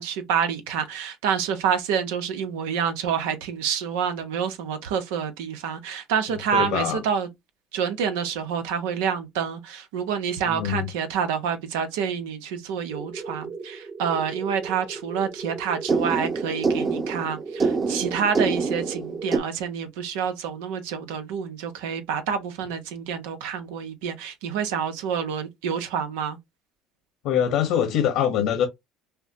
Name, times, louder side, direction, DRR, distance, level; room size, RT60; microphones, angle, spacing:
voice 1, 0.0-7.3 7.7-26.4, right 7 dB, 85° right, 1.0 m, -28 dB
voice 2, 6.3-7.0 10.4-10.9 27.2-28.7, left 9 dB, 70° left, 1.1 m, -24 dB
sound 1, 12.9-19.4, right 4 dB, 30° right, 1.0 m, -28 dB
5.7 x 2.3 x 2.9 m
supercardioid pair, 95°, 0 cm